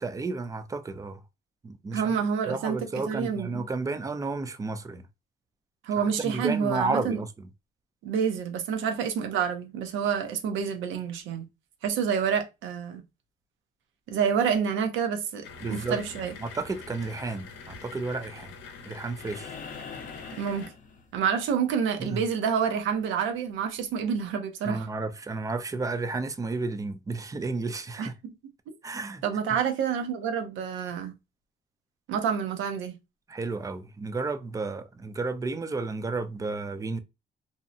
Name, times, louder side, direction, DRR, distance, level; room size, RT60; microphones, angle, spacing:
voice 1, 0.0-1.2 1.6-2.1 2.4-5.1 6.0-7.5 15.6-16.0 16.4-18.5 18.9-19.6 22.0-22.2 24.6-28.1 28.8-29.2 33.3-37.0, right 3 dB, 15° right, 0.3 m, -32 dB
voice 2, 1.9-3.6 5.8-7.2 8.0-11.4 11.8-13.0 14.1-16.3 20.3-20.7 21.1-24.9 28.0-28.3 28.7-28.8 29.2-31.1 32.1-32.9, right 7 dB, 85° right, 0.6 m, -28 dB
sound 1, 15.4-20.7, left 4 dB, 90° left, 0.7 m, -45 dB
sound 2, 19.2-21.5 23.3-23.4, left 5 dB, 45° left, 0.5 m, -43 dB
2.6 x 2.1 x 2.5 m
cardioid pair, 115°, 20 cm